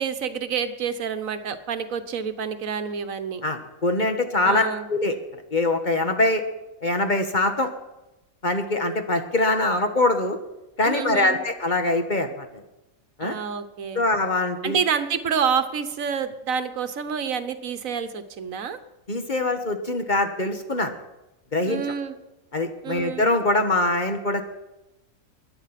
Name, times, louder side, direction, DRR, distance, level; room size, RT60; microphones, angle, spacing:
voice 1, 0.0-3.4 4.4-4.9 10.8-11.4 13.2-14.0 14.6-18.8 21.7-22.1 22.8-23.2, right 7 dB, 75° right, 10 dB, 1.4 m, -28 dB
voice 2, 3.4-4.6 4.9-5.1 5.5-6.4 6.8-7.7 8.4-10.4 10.8-12.5 13.2-13.4 13.9-14.8 19.1-20.9 21.5-21.8 22.5-24.4, left 2 dB, 35° left, 6 dB, 1.5 m, -23 dB
22.0 x 9.8 x 5.9 m, 0.98 s
omnidirectional pair, 1.4 m